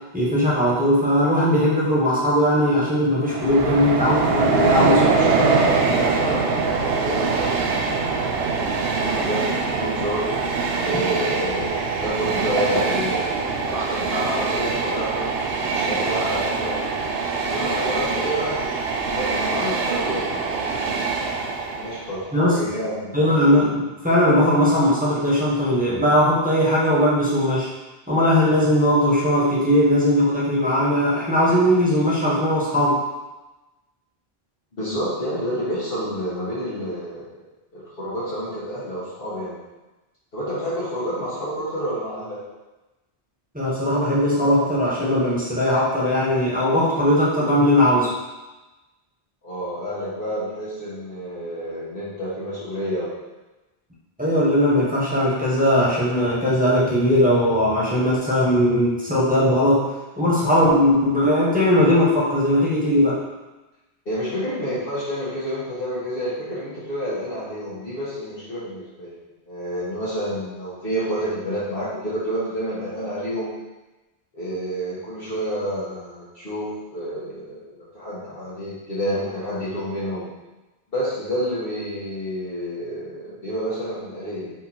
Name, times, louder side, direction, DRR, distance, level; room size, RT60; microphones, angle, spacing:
voice 1, 0.1-5.0 22.3-22.6 23.1-27.7 28.1-33.0 43.5-48.1 54.2-59.9 60.2-63.2, left 1 dB, 10° right, -7 dB, 1.1 m, -19 dB
Train, 3.2-22.1, right 4 dB, 75° right, 0.8 m, -23 dB
voice 2, 4.6-9.4 9.7-10.2 10.8-15.3 15.6-16.8 17.5-18.6 19.1-21.1 21.7-23.3 34.7-37.3 37.7-39.6 40.3-42.4 49.4-53.1 64.0-69.1 69.5-73.5 74.3-80.3 80.9-84.5, equal, 65° left, -10 dB, 1.5 m, -29 dB
4.3 x 2.6 x 4.3 m, 1.1 s
omnidirectional pair, 1.0 m